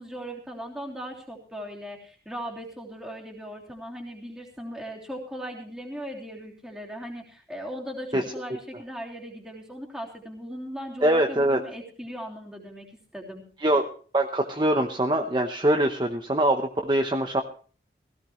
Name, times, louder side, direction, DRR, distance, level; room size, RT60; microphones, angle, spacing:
voice 1, 0.0-12.9 13.1-13.4, equal, 5° right, -1 dB, 3.1 m, -38 dB
voice 2, 11.0-11.6 13.6-13.8 14.1-17.4, right 1 dB, 25° right, 4 dB, 0.9 m, -23 dB
17.0 x 16.5 x 3.1 m, 0.42 s
head